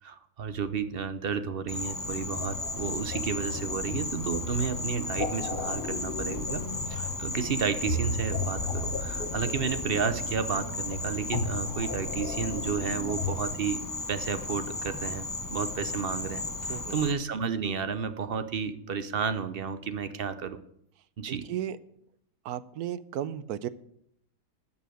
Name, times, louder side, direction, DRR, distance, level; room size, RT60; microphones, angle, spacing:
voice 1, 0.0-20.6 21.2-21.5, right 6 dB, 50° right, 11 dB, 0.7 m, -32 dB
Insect, 1.7-17.1, left 2 dB, 20° left, 0.5 m, -35 dB
sound 1, 2.3-13.3, left 2 dB, 40° left, 1.1 m, -35 dB
voice 2, 21.3-21.8 22.4-23.7, right 11 dB, 70° right, 16 dB, 1.1 m, -34 dB
13.5 x 5.7 x 9.2 m, 0.72 s
omnidirectional pair, 1.8 m